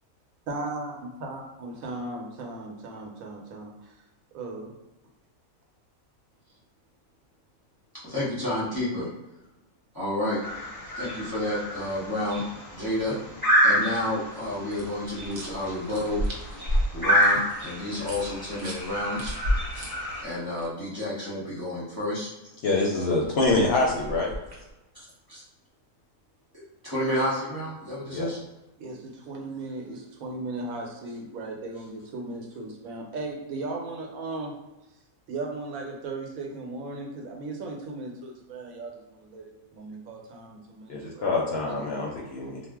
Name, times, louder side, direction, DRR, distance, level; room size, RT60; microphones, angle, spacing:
voice 1, 0.5-3.9 4.3-4.8 28.8-34.6 35.3-41.4 41.6-41.9, right 2 dB, 85° right, 0 dB, 1.1 m, -37 dB
voice 2, 8.0-9.1 9.9-10.4 10.9-12.5 12.7-13.2 13.6-16.2 16.9-19.3 20.2-22.3 24.9-25.4 26.5-28.4, left 1 dB, 25° left, -8 dB, 0.5 m, -30 dB
sound 1, 10.4-20.2, equal, 15° right, 0.8 m, -28 dB
sound 2, 14.7-20.7 23.2-24.7, equal, 60° right, 0.9 m, -32 dB
voice 3, 22.6-24.3 28.1-28.3 40.9-42.6, left 2 dB, 65° left, -3 dB, 0.7 m, -25 dB
2.4 x 2.0 x 3.4 m, 1.0 s
omnidirectional pair, 1.4 m